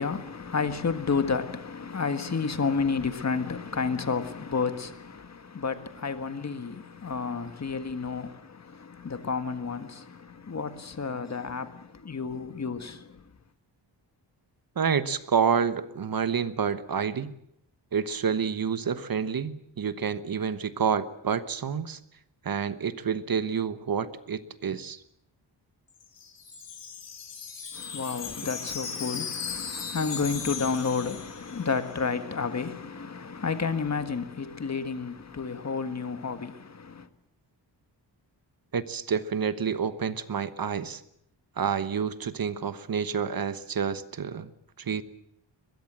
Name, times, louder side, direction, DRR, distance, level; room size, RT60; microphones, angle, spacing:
voice 1, 0.0-13.2 27.7-37.1, left 5 dB, 40° left, 1.6 m, -31 dB
voice 2, 14.8-17.3 17.9-22.0 22.4-25.0 38.7-41.0 41.6-44.5 44.8-45.0, right 6 dB, 55° right, 1.2 m, -28 dB
Wind chime, 25.9-31.9, left 6 dB, 75° left, 5.8 m, -37 dB
22.0 x 21.5 x 7.5 m
wide cardioid pair, 155°, 43 cm